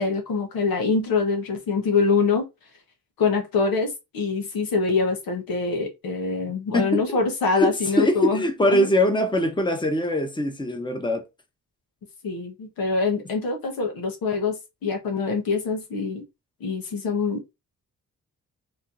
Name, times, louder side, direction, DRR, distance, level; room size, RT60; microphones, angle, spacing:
voice 1, 0.0-2.5 3.2-8.9 12.2-16.2 16.6-17.5, left 4 dB, 90° left, 1.2 m, -25 dB
voice 2, 6.7-7.2 7.5-11.2, equal, 15° left, 0.9 m, -22 dB
4.3 x 3.0 x 2.6 m
cardioid pair, 65°, 34 cm